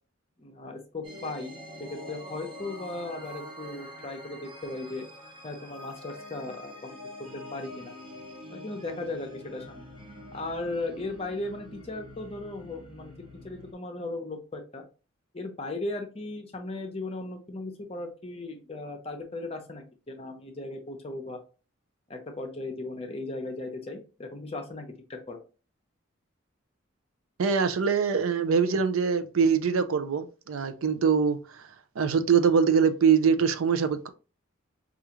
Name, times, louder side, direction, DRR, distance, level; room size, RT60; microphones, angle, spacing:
voice 1, 0.4-5.1 5.4-7.0 7.5-7.9 8.5-9.9 10.3-13.1 13.4-14.8 15.3-21.4 22.1-25.4, left 2 dB, 30° left, 0.6 m, -37 dB
sound 1, 1.0-13.7, left 1 dB, 25° right, 0.8 m, -45 dB
voice 2, 27.4-31.6 32.0-34.1, right 6 dB, 85° right, 0.5 m, -23 dB
4.7 x 2.4 x 2.8 m
head